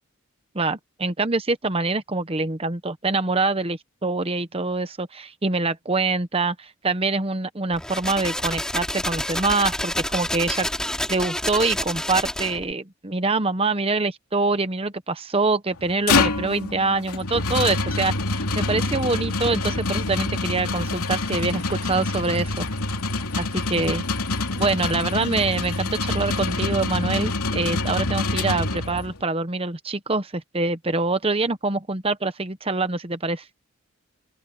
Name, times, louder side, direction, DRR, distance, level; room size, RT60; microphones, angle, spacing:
voice 1, 0.5-10.7 11.1-22.7 23.4-24.0 24.6-33.4, right 3 dB, 25° right, 0.9 m, -25 dB
sound 1, 7.7-12.7, left 1 dB, 5° left, 2.9 m, -28 dB
sound 2, 15.8-29.2, left 3 dB, 90° left, 3.0 m, -26 dB
open air
head